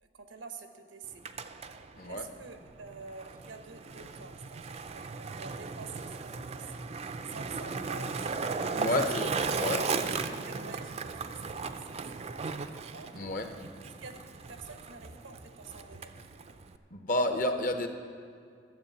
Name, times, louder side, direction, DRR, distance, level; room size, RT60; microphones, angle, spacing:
voice 1, 0.0-1.3 2.0-6.9 7.3-8.7 9.7-13.1 13.8-16.3, right 4 dB, 90° right, 7 dB, 1.0 m, -48 dB
Skateboard, 1.0-16.8, right 4 dB, 35° right, 0.4 m, -36 dB
voice 2, 8.7-10.0 13.1-13.5 16.9-17.9, left 1 dB, 45° left, 6 dB, 0.8 m, -30 dB
12.5 x 7.5 x 7.1 m, 2.3 s
head